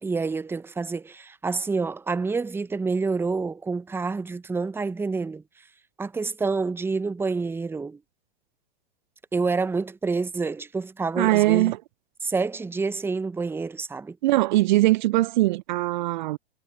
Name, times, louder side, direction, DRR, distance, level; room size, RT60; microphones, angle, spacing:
voice 1, 0.0-5.4 6.0-8.0 9.3-11.7 12.2-14.2, right 4 dB, 10° right, 0.9 m, -28 dB
voice 2, 11.2-11.8 14.2-16.4, right 18 dB, 50° right, 0.7 m, -21 dB
hypercardioid pair, 105°, 29 cm